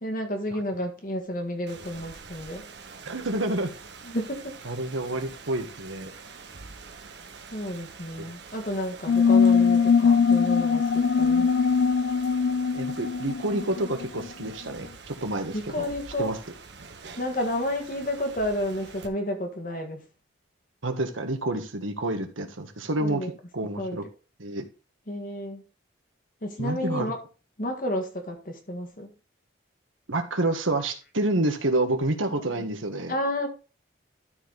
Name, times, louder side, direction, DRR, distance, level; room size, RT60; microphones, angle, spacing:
voice 1, 0.0-2.6 4.1-4.5 7.5-10.8 11.1-11.5 15.5-16.3 17.2-20.0 23.0-23.3 23.8-24.0 25.1-25.6 26.4-27.2 27.6-29.1 32.5-32.7 33.1-33.5, left 1 dB, 45° left, 1.7 m, -31 dB
Rain, 1.7-19.1, right 4 dB, 60° right, 1.1 m, -46 dB
voice 2, 3.0-3.7 4.6-6.1 12.7-15.9 16.2-16.4 20.8-24.0 24.4-24.6 26.6-27.1 30.1-33.1, right 2 dB, 90° right, 1.5 m, -28 dB
sound 1, 9.1-14.3, left 5 dB, 60° left, 0.3 m, -21 dB
12.5 x 4.5 x 4.0 m
head